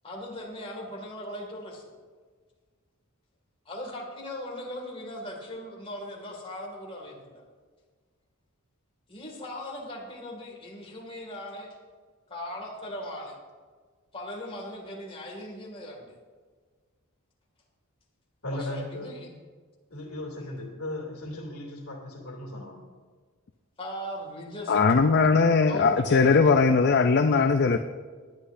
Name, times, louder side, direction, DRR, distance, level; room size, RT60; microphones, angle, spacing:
voice 1, 0.0-1.9 3.7-7.4 9.1-11.7 12.3-13.4 14.1-16.2 18.5-19.3 20.4-20.5 23.8-24.8 25.1-25.3 25.7-26.5, left 1 dB, 25° left, -1 dB, 2.3 m, -39 dB
voice 2, 18.4-19.1 19.9-22.8, left 1 dB, 80° left, 0 dB, 2.7 m, -37 dB
voice 3, 24.7-27.8, left 4 dB, 50° left, 6 dB, 0.5 m, -20 dB
18.5 x 10.0 x 2.7 m, 1.5 s
head